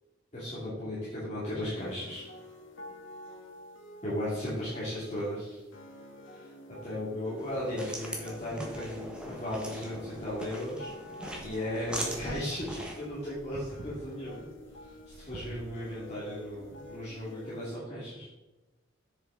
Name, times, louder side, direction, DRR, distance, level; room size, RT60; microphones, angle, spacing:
voice 1, 0.3-2.2 4.0-5.6 6.3-6.5 6.8-10.9 11.4-14.4 14.8-18.3, left 1 dB, 35° left, -10 dB, 2.5 m, -36 dB
sound 1, 1.8-17.8, left 1 dB, 85° left, 1.5 m, -49 dB
sound 2, 7.4-13.1, equal, 5° right, 1.3 m, -41 dB
Wind, 8.3-17.2, right 1 dB, 55° right, 1.4 m, -52 dB
8.2 x 6.7 x 3.9 m, 1.1 s
head